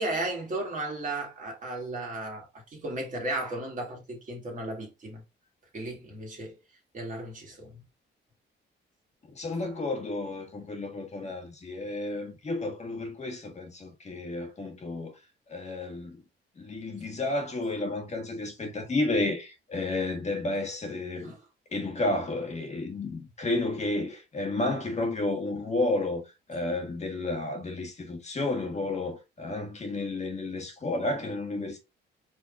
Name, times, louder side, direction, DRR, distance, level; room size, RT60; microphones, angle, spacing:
voice 1, 0.0-5.2 5.7-6.6 6.9-7.8 21.2-21.4, right 2 dB, 40° right, 2.1 m, -35 dB
voice 2, 9.3-15.1 15.5-16.2 16.6-21.4 21.7-26.2 26.5-31.8, left 2 dB, 35° left, 1.6 m, -31 dB
4.9 x 3.4 x 2.6 m
cardioid pair, 90°, 20 cm